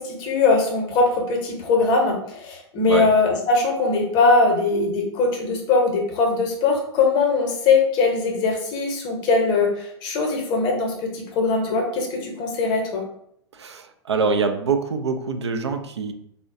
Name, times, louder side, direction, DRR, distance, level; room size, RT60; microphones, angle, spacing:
voice 1, 0.0-13.0, left 3 dB, 35° left, 2 dB, 0.7 m, -21 dB
voice 2, 13.5-16.1, right 4 dB, 75° right, 7 dB, 0.4 m, -24 dB
3.7 x 2.0 x 2.5 m, 0.73 s
figure-of-eight pair, 100°, 14 cm